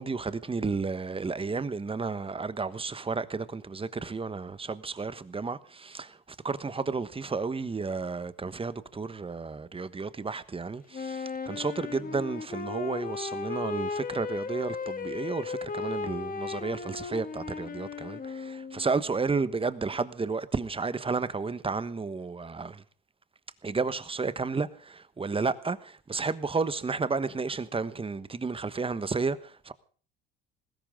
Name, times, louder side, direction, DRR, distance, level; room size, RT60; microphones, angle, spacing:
voice 1, 0.0-6.2 6.4-22.8 23.6-29.7, right 4 dB, 20° right, 1.3 m, -32 dB
Wind instrument woodwind instrument, 10.9-18.9, left 5 dB, 30° left, 1.9 m, -36 dB
19.5 x 16.5 x 3.8 m
supercardioid pair, 85°, 30 cm